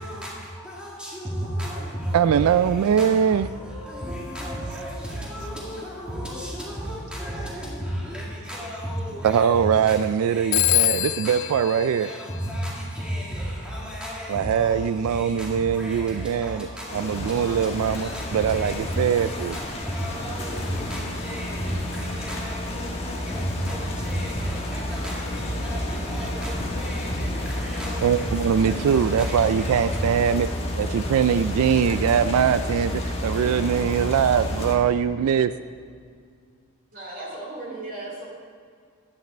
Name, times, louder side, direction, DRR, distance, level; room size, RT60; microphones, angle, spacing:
voice 1, 0.0-30.2, equal, 5° right, -5 dB, 1.9 m, -33 dB
voice 2, 2.1-3.5 9.2-12.1 14.3-16.7 16.9-19.6 28.0-30.5 30.8-35.5, right 7 dB, 85° right, 13 dB, 0.3 m, -22 dB
Telephone, 10.5-13.0, left 16 dB, 55° left, 0.3 m, -25 dB
sound 1, 16.9-34.8, left 1 dB, 30° left, 1.2 m, -31 dB
voice 3, 36.9-38.3, right 2 dB, 40° right, -3 dB, 2.6 m, -36 dB
11.5 x 9.3 x 4.3 m, 2.1 s
head